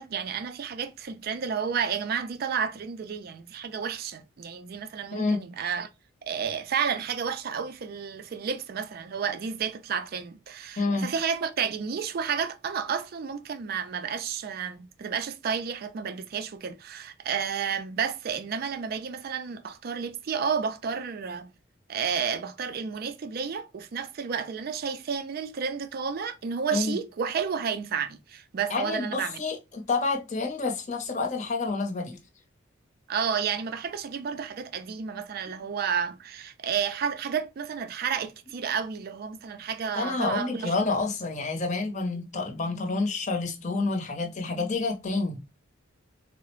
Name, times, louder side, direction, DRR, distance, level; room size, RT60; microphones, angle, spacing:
voice 1, 0.0-5.9 6.2-21.5 21.9-29.4 33.1-40.7, right 6 dB, 45° right, 0.3 m, -31 dB
voice 2, 5.1-5.5 10.8-11.1 26.7-27.0 28.7-32.2 35.5-35.6 39.9-45.4, left 3 dB, 35° left, 0.7 m, -28 dB
3.7 x 2.0 x 2.9 m
head